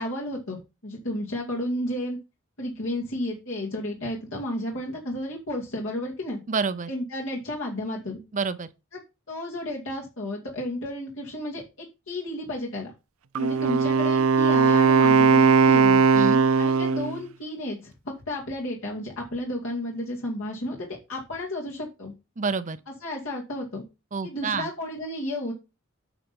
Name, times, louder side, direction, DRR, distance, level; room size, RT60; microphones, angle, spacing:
voice 1, 0.0-2.2 2.6-6.4 6.9-8.2 9.3-11.6 12.1-12.9 13.4-16.0 16.6-22.1 23.0-23.8 24.2-25.5, left 1 dB, 70° left, 2.3 m, -32 dB
voice 2, 6.5-6.9 8.3-8.7 16.1-16.4 22.4-22.8 24.1-24.7, right 5 dB, 40° right, 0.6 m, -28 dB
Wind instrument woodwind instrument, 13.4-17.2, right 5 dB, 85° right, 0.5 m, -19 dB
8.9 x 4.2 x 5.3 m
head